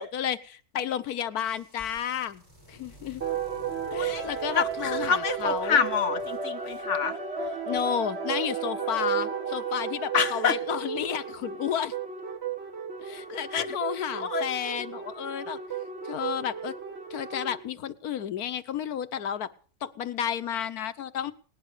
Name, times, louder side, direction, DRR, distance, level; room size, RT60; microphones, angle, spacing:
voice 1, 0.0-2.4 2.7-3.2 3.9-5.8 7.7-11.9 13.0-15.6 16.0-16.7 17.1-19.5 19.8-21.3, left 9 dB, 80° left, 1.4 m, -32 dB
sound 1, 1.3-7.8, equal, 15° right, 7.2 m, -54 dB
sound 2, 3.2-17.6, right 6 dB, 45° right, 2.4 m, -33 dB
voice 2, 3.9-4.3 4.5-7.2 10.1-10.6 13.5-13.7 14.1-14.5, left 6 dB, 55° left, 1.5 m, -27 dB
19.0 x 10.5 x 6.6 m
omnidirectional pair, 1.6 m